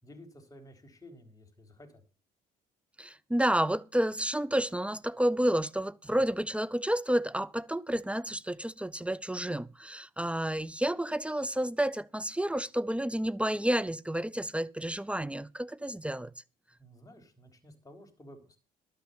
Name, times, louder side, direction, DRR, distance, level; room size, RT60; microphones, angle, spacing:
voice 1, 0.0-2.0 16.8-18.6, left 1 dB, 20° left, 4.0 m, -53 dB
voice 2, 3.0-16.3, right 1 dB, 5° right, 0.5 m, -30 dB
12.5 x 6.3 x 6.8 m
supercardioid pair, 85°, 18 cm